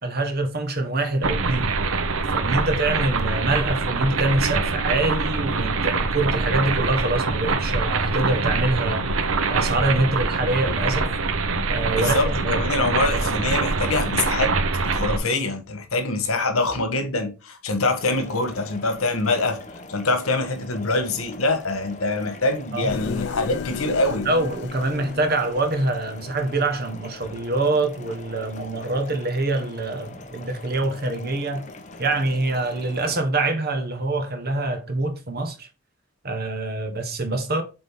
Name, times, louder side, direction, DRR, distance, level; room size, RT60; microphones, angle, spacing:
voice 1, 0.0-1.7 2.3-9.1 9.5-11.1 11.7-12.2 12.4-13.3 22.7-22.9 24.2-31.7 32.0-35.7 36.2-37.6, right 2 dB, 45° right, 1.4 m, -25 dB
sound 1, 1.2-15.2, right 3 dB, 75° right, 0.9 m, -24 dB
voice 2, 11.9-14.5 14.9-19.6 19.9-24.3, left 2 dB, 85° left, 1.4 m, -24 dB
sound 2, 17.9-33.2, left 2 dB, 35° left, 0.9 m, -42 dB
sound 3, 22.9-26.9, left 6 dB, 50° left, 0.3 m, -35 dB
7.7 x 3.9 x 3.7 m
head